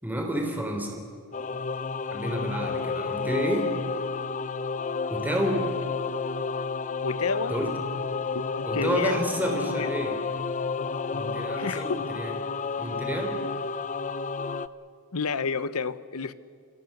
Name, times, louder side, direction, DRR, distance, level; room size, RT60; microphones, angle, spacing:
voice 1, 0.0-1.0 2.1-3.7 5.1-5.6 7.5-7.7 8.6-10.2 11.1-12.3 12.8-13.4, equal, 10° right, 2 dB, 3.4 m, -30 dB
Singing / Musical instrument, 1.3-14.7, left 4 dB, 35° left, 0.6 m, -31 dB
voice 2, 7.0-7.5 8.3-9.9 11.6-12.0 15.1-16.3, left 4 dB, 80° left, 15 dB, 0.9 m, -30 dB
28.5 x 21.5 x 6.7 m, 2.5 s
head